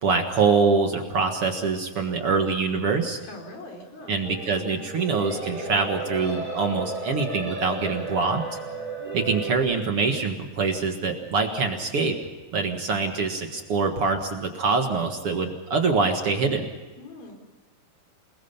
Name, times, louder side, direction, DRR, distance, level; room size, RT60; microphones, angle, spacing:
voice 1, 0.0-3.2 4.1-8.4 9.1-12.2 12.5-16.7, right 4 dB, 50° right, 4 dB, 1.8 m, -24 dB
voice 2, 3.2-4.2 17.0-17.4, left 2 dB, 60° left, 3 dB, 5.6 m, -42 dB
sound 1, 4.2-9.6, right 2 dB, 10° right, 5.0 m, -33 dB
28.0 x 20.5 x 5.7 m, 1.3 s
omnidirectional pair, 4.6 m